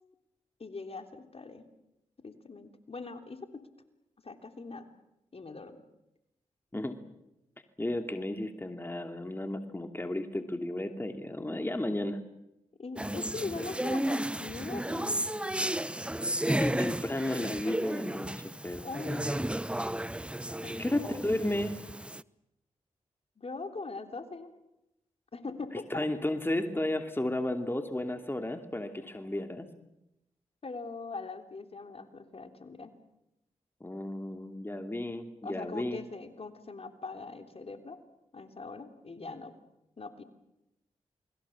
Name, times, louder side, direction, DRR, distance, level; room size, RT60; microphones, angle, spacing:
voice 1, 0.6-1.6 2.2-3.6 4.2-4.9 5.3-5.8 12.8-15.6 18.8-19.4 20.6-21.2 23.4-24.5 25.3-26.1 30.6-32.9 35.4-38.0 38.3-39.5 40.0-40.2, left 3 dB, 50° left, 6 dB, 3.4 m, -41 dB
voice 2, 7.8-12.2 16.5-18.3 18.6-18.8 20.8-21.8 25.9-29.7 33.8-36.0, left 1 dB, 15° left, 5 dB, 2.8 m, -33 dB
sound 1, 13.0-22.2, right 1 dB, 10° right, 0.8 m, -33 dB
28.5 x 21.5 x 7.3 m, 0.88 s
supercardioid pair, 40°, 13 cm